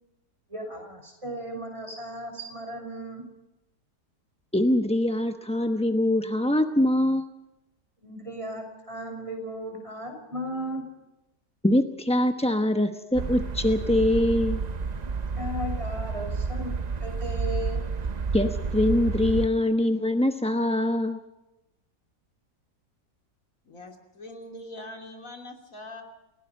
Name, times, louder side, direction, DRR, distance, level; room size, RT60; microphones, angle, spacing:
voice 1, 0.5-3.2 8.0-10.8 15.0-15.1 15.4-16.7 17.0-17.8, equal, 20° right, 3 dB, 6.0 m, -36 dB
voice 2, 4.5-7.3 11.6-14.6 18.3-21.2, left 1 dB, 5° left, 6 dB, 0.6 m, -23 dB
sound 1, 13.1-19.5, right 4 dB, 40° right, 0.6 m, -30 dB
voice 3, 23.6-26.0, left 1 dB, 50° left, 3 dB, 3.4 m, -42 dB
30.0 x 17.5 x 5.5 m, 0.95 s
omnidirectional pair, 1.8 m